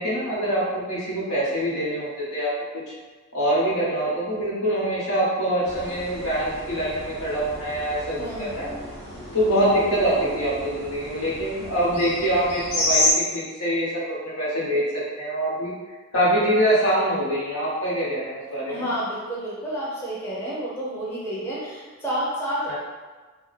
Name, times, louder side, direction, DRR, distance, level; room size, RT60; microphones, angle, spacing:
voice 1, 0.0-2.5 3.3-8.7 9.3-14.8 15.2-15.7 16.1-18.9 22.7-22.8, right 1 dB, 80° left, -8 dB, 1.3 m, -24 dB
sound 1, 5.6-13.1, left 1 dB, 50° left, 0.9 m, -30 dB
voice 2, 8.2-8.6 18.7-22.7, right 1 dB, 10° left, -8 dB, 0.6 m, -30 dB
2.8 x 2.3 x 4.0 m, 1.3 s
head